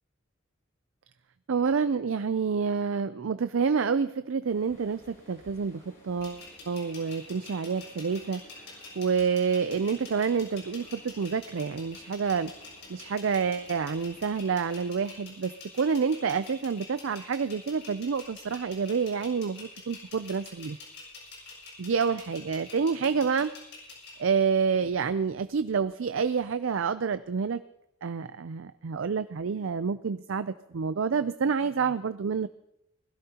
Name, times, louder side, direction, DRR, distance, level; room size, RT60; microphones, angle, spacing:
voice 1, 1.5-8.4 9.0-12.5 12.9-20.8 21.8-23.5 24.2-27.6 28.0-32.5, right 5 dB, 70° right, 12 dB, 0.5 m, -28 dB
sound 1, 4.4-14.2, equal, 35° left, 7.9 m, -56 dB
sound 2, 6.2-24.2, left 4 dB, 55° left, 7.5 m, -47 dB
21.0 x 16.5 x 2.9 m, 0.80 s
head